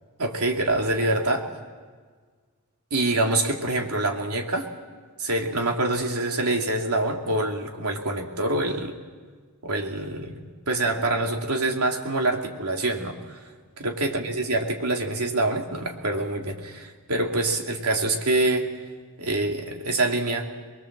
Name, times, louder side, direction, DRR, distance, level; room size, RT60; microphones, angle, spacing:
voice 1, 0.2-1.4 2.9-4.7 5.2-8.9 9.6-13.4 13.8-18.7 19.2-20.4, right 2 dB, 80° right, 2 dB, 2.9 m, -25 dB
25.0 x 21.5 x 7.6 m, 1.5 s
head